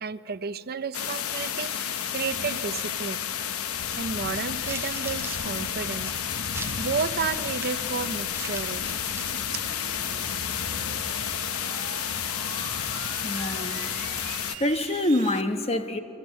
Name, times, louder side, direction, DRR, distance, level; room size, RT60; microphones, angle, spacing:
voice 1, 0.0-3.2 4.0-6.1 6.8-9.0, right 5 dB, 45° right, 0.6 m, -32 dB
sound 1, 0.9-14.6, left 8 dB, 80° left, 1.0 m, -31 dB
sound 2, 3.8-4.0 4.6-7.8 8.3-9.3, right 3 dB, 10° right, 1.9 m, -41 dB
sound 3, 5.3-15.4, right 8 dB, 90° right, 1.7 m, -46 dB
voice 2, 12.4-14.3 14.6-16.0, left 1 dB, 30° left, 1.1 m, -28 dB
29.0 x 23.5 x 8.1 m
head